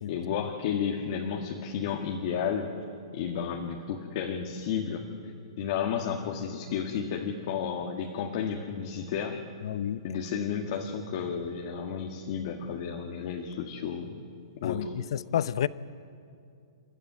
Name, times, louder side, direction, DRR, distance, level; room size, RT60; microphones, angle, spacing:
voice 1, 0.1-2.7 3.1-9.4 10.0-14.2 14.6-14.9, left 7 dB, 50° left, 1.7 m, -32 dB
voice 2, 9.6-10.0 14.6-15.7, left 10 dB, 65° left, 0.6 m, -30 dB
29.0 x 12.5 x 9.4 m
hypercardioid pair, 145°, 3 cm